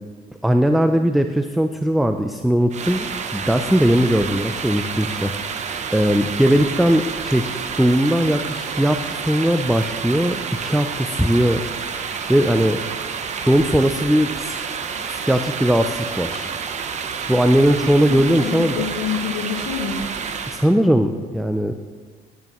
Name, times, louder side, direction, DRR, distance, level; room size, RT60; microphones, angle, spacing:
voice 1, 0.4-3.1 3.3-11.6 12.3-12.8 13.4-14.6 15.1-16.5 17.3-18.8 20.5-21.8, equal, ahead, 7 dB, 0.3 m, -19 dB
sound 1, 2.7-20.7, right 6 dB, 45° right, 0.7 m, -29 dB
voice 2, 18.1-20.1, left 7 dB, 90° left, 0 dB, 1.5 m, -27 dB
10.5 x 9.4 x 3.0 m, 1.5 s
cardioid pair, 110°, 17 cm